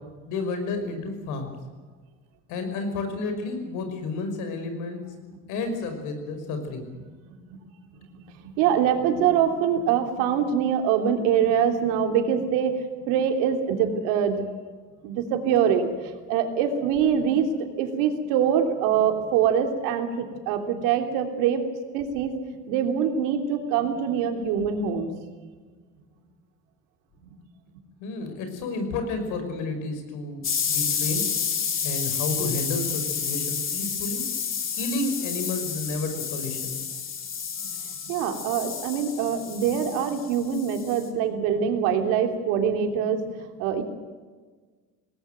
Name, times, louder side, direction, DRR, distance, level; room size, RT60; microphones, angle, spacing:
voice 1, 0.3-1.5 2.5-5.0 5.5-6.8 28.0-31.3 31.8-34.2 34.7-36.8, left 3 dB, 75° left, 6 dB, 5.7 m, -31 dB
voice 2, 7.2-7.6 8.4-12.7 13.1-14.4 15.0-17.5 17.8-21.6 21.9-22.3 22.7-25.1 27.2-27.3 38.0-43.2 43.6-43.8, right 8 dB, 90° right, 5 dB, 3.1 m, -24 dB
sound 1, 30.4-41.1, left 7 dB, 40° left, 3.3 m, -30 dB
19.5 x 19.0 x 9.2 m, 1.4 s
cardioid pair, 120°, 31 cm